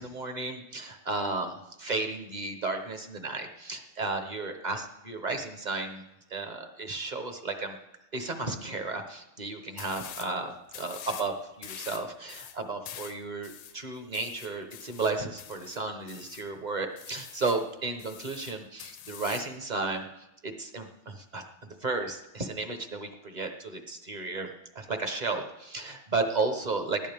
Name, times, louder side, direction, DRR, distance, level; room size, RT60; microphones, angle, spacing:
voice 1, 0.0-1.5 1.8-6.0 6.3-7.8 8.1-20.1 20.4-21.4 21.8-24.5 24.7-27.0, right 3 dB, 35° right, 6 dB, 0.7 m, -33 dB
sound 1, 9.8-10.3 10.7-11.3 11.6-16.5 17.0-17.7 18.0-19.5, left 9 dB, 80° left, 1.7 m, -45 dB
20.0 x 14.0 x 3.6 m, 0.91 s
omnidirectional pair, 2.3 m